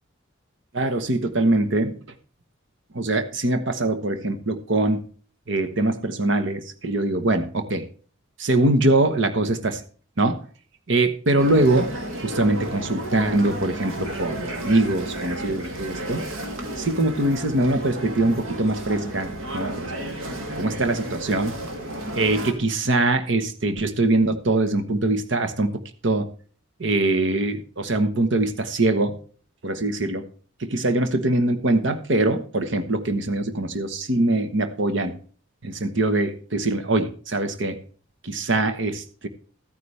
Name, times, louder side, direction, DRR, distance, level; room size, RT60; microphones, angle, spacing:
voice 1, 0.7-1.9 2.9-5.0 5.5-7.9 8.4-9.8 10.2-10.4 10.9-11.9 12.2-16.3 16.8-19.9 20.2-21.6 22.1-26.3 26.8-29.2 29.6-30.3 30.6-35.2 35.6-37.8 38.2-39.3, right 2 dB, 65° right, 9 dB, 1.1 m, -23 dB
sound 1, 11.4-22.5, right 1 dB, 85° right, 2.6 m, -32 dB
14.5 x 9.7 x 3.3 m, 0.41 s
head